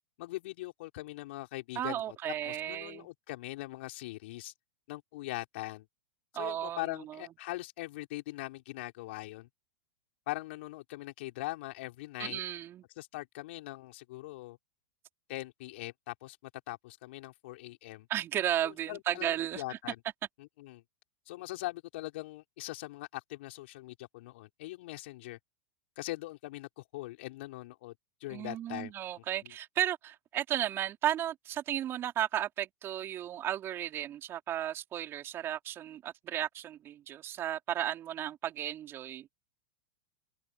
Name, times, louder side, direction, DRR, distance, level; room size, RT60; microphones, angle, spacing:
voice 1, 0.2-4.5 4.9-5.9 6.3-9.5 10.3-12.4 13.0-14.6 15.3-18.1 18.6-20.0 20.4-20.8 21.3-25.4 26.0-28.0 28.2-28.9 29.4-29.5, left 19 dB, 60° left, 5.3 m, -41 dB
voice 2, 1.8-3.1 6.3-7.2 12.2-12.8 18.1-19.8 28.3-39.3, right 11 dB, 35° right, 4.3 m, -34 dB
hypercardioid pair, 100°, 7 cm